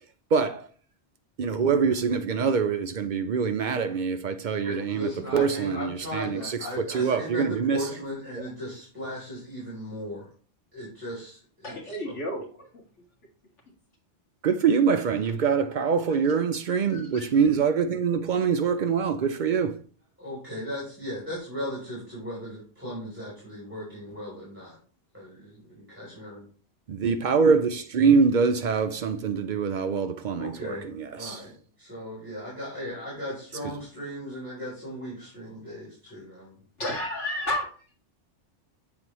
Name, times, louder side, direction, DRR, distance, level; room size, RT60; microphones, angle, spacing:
voice 1, 0.3-0.7 1.4-7.9 14.4-19.8 26.9-31.4, right 5 dB, 60° right, 0.5 m, -24 dB
voice 2, 4.6-10.3 10.7-11.9 20.2-24.8 25.1-26.4 30.4-31.5 31.8-36.6, left 1 dB, 10° right, 3.0 m, -37 dB
voice 3, 11.6-12.7 16.1-16.2 16.9-17.3 36.8-37.7, left 1 dB, 80° left, 2.2 m, -31 dB
7.7 x 4.0 x 3.0 m
omnidirectional pair, 1.2 m